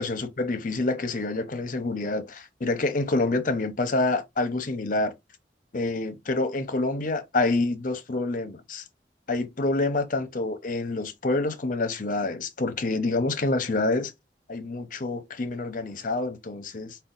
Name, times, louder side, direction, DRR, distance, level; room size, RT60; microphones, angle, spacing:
voice 1, 0.0-5.1 5.7-8.8 9.3-14.1 14.5-17.0, left 2 dB, 50° left, 0.7 m, -27 dB
4.9 x 2.3 x 3.9 m
head